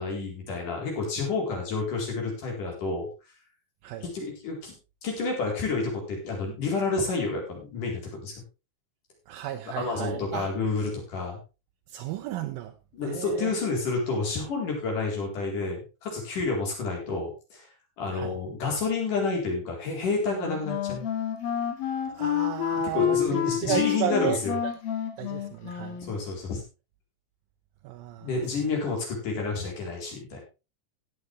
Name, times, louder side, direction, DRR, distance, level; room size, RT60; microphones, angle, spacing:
voice 1, 0.0-3.1 4.0-4.7 5.0-8.4 9.8-11.4 12.9-17.7 18.0-21.1 22.7-24.6 26.0-26.6 28.2-30.4, left 4 dB, 60° left, 5.7 m, -30 dB
voice 2, 9.3-10.5 11.9-12.7 13.0-13.5 18.1-18.3 22.1-24.4 25.2-26.0 27.8-28.3, right 12 dB, 80° right, 2.5 m, -33 dB
Wind instrument woodwind instrument, 20.3-26.2, left 10 dB, 80° left, 3.8 m, -29 dB
16.0 x 9.3 x 3.4 m
omnidirectional pair, 4.2 m